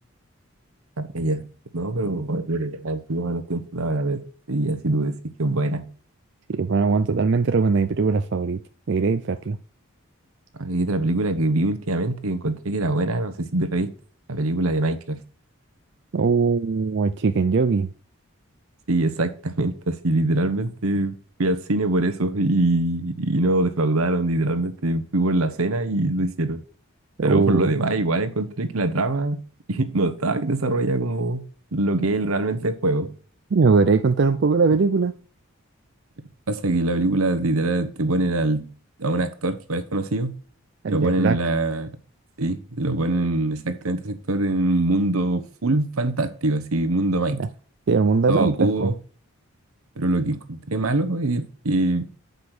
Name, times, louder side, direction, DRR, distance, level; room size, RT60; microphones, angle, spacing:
voice 1, 1.0-1.4 1.7-4.2 4.5-5.9 10.6-13.9 14.3-15.2 18.9-26.6 27.2-29.4 29.7-31.4 31.7-33.1 36.5-38.7 39.0-40.3 40.9-41.9 42.4-47.4 48.3-48.9 50.0-52.1, right 2 dB, 80° right, 1.0 m, -23 dB
voice 2, 6.5-8.6 8.9-9.6 16.1-17.9 27.2-27.7 33.5-35.1 40.8-41.4 47.4-47.5 47.9-48.9, right 4 dB, 55° right, 0.4 m, -20 dB
8.1 x 5.3 x 6.0 m
head